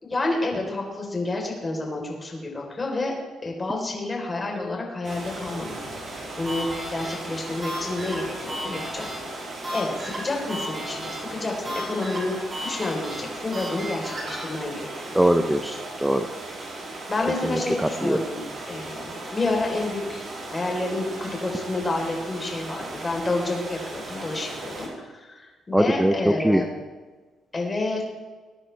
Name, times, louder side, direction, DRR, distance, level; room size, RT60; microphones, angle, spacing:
voice 1, 0.0-3.1 3.4-5.8 6.2-9.1 9.7-15.1 17.1-20.2 20.5-24.9 25.3-26.7 27.5-28.0, left 2 dB, 25° left, 0 dB, 4.1 m, -29 dB
sound 1, 5.0-24.9, right 2 dB, 50° right, 4.3 m, -37 dB
sound 2, 6.4-14.5, equal, 30° right, 4.5 m, -35 dB
voice 2, 15.1-16.3 17.4-18.2 25.7-26.6, right 1 dB, 5° right, 7 dB, 0.8 m, -22 dB
20.5 x 9.9 x 3.5 m, 1.3 s
cardioid pair, 90°, 0 cm